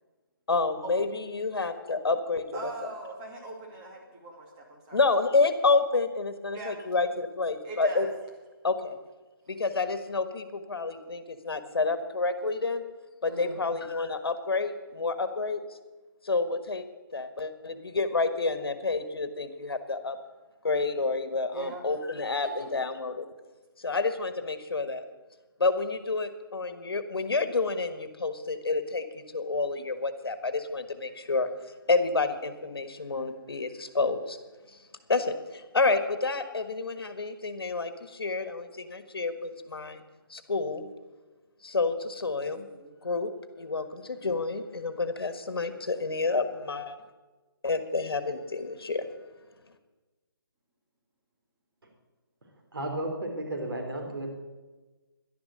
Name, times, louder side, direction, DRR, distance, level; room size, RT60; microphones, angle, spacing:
voice 1, 0.5-2.7 4.9-8.1 8.6-9.0 9.5-12.8 13.2-15.6 16.2-16.8 17.1-20.2 20.6-23.2 23.8-25.0 25.6-31.5 31.9-34.4 35.1-40.0 40.3-40.9 41.6-42.6 43.0-43.3 43.6-47.0 47.6-49.0, left 3 dB, 80° left, 10 dB, 1.5 m, -29 dB
voice 2, 2.5-5.0 6.5-6.7 7.6-8.1 13.3-13.9 21.5-21.8 22.4-22.8 42.7-43.0, right 2 dB, 20° right, -1 dB, 2.4 m, -41 dB
voice 3, 52.7-54.3, right 1 dB, 70° right, 1 dB, 3.8 m, -33 dB
11.5 x 10.5 x 6.4 m, 1.2 s
hypercardioid pair, 160°, 12 cm